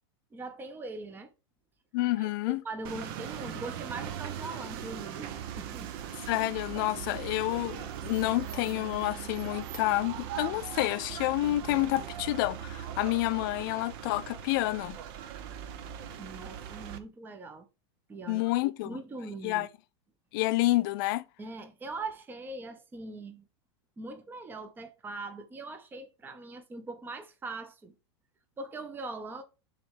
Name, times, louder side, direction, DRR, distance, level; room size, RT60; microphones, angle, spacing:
voice 1, 0.3-1.3 2.2-5.9 16.2-17.6 18.1-18.5 18.8-19.7 21.4-23.4 24.0-27.9 28.6-29.4, right 3 dB, 15° right, 0.8 m, -41 dB
voice 2, 1.9-2.6 6.3-15.0 18.3-19.0 19.4-19.7 20.3-21.2, left 18 dB, 55° left, 0.4 m, -29 dB
sound 1, 2.8-17.0, right 9 dB, 55° right, 0.8 m, -40 dB
sound 2, 4.7-15.2, right 9 dB, 85° right, 0.6 m, -51 dB
6.8 x 3.2 x 4.8 m
supercardioid pair, 130°, 14 cm